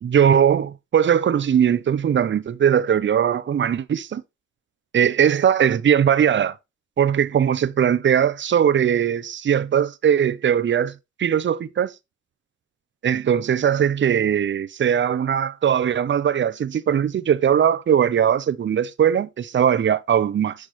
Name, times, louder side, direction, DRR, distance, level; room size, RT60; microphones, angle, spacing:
voice 1, 0.0-4.2 4.9-6.6 7.0-10.9 11.2-11.9 13.0-20.5, right 8 dB, 40° right, 0.7 m, -20 dB
8.4 x 6.0 x 3.1 m
cardioid pair, 90°, 30 cm